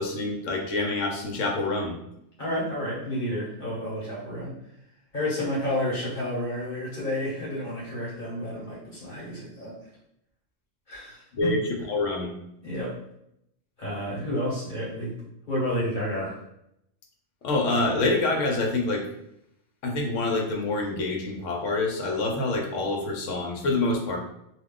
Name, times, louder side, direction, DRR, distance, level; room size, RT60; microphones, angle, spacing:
voice 1, 0.0-2.0 11.3-12.3 17.4-19.1 19.8-24.2, left 2 dB, 75° left, 2 dB, 1.0 m, -26 dB
voice 2, 2.4-4.5 5.1-9.7 10.9-11.5 12.6-13.0 13.8-15.2 15.5-16.3, left 1 dB, 40° left, -7 dB, 1.0 m, -30 dB
2.3 x 2.3 x 3.6 m, 0.79 s
omnidirectional pair, 1.3 m